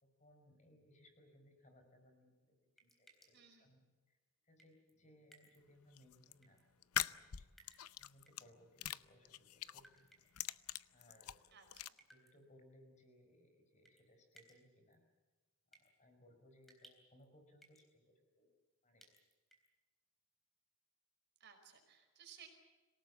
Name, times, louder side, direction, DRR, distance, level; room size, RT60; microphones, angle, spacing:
voice 1, 0.0-4.2 4.4-7.5 7.9-10.3 10.9-11.5 12.1-15.0 15.7-18.5 18.8-19.0, left 1 dB, 30° left, 5 dB, 5.1 m, -67 dB
sound 1, 2.8-3.5 4.6-4.9 5.3-5.6 6.4-6.6 7.6-8.4 9.8-10.5 12.0-12.3 13.8-14.0 14.3-14.6 14.9-15.0 15.7-15.9 16.6-17.3 17.6-17.9 19.0-19.7, right 1 dB, ahead, 3.8 m, -65 dB
voice 2, 3.3-3.7 11.5-12.0 21.4-22.5, right 8 dB, 50° right, 3 dB, 5.1 m, -60 dB
sound 2, 5.9-6.3 6.8-8.4 8.8-9.8 10.2-11.9, left 11 dB, 85° left, 0.7 m, -42 dB
26.5 x 18.0 x 8.4 m, 1.3 s
head